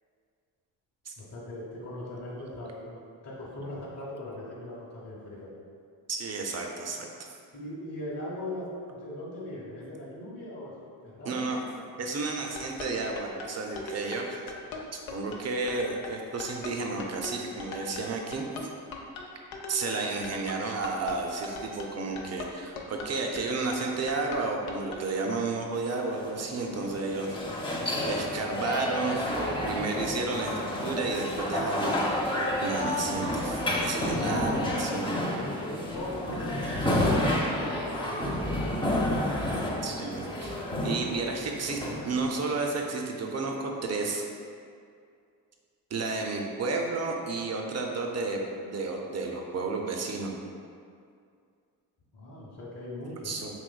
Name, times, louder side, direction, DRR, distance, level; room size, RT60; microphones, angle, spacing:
voice 1, 1.2-5.5 7.5-8.7 9.0-10.7 11.0-11.5 34.0-34.4 35.1-37.4 37.6-39.2 52.1-53.3, left 1 dB, 30° left, -7 dB, 0.9 m, -40 dB
voice 2, 6.1-7.3 8.6-8.8 9.8-9.9 11.2-11.6 12.0-14.4 14.9-18.4 19.7-27.4 28.1-35.1 36.3-36.4 39.8-44.2 45.9-50.3 53.2-53.5, right 3 dB, 30° right, 1 dB, 0.6 m, -32 dB
sound 1, 12.3-25.1, left 3 dB, 70° left, 0.7 m, -40 dB
sound 2, 25.9-42.9, left 1 dB, 10° left, 0.6 m, -30 dB
4.6 x 2.9 x 2.2 m, 2.3 s
hypercardioid pair, 50°, 50 cm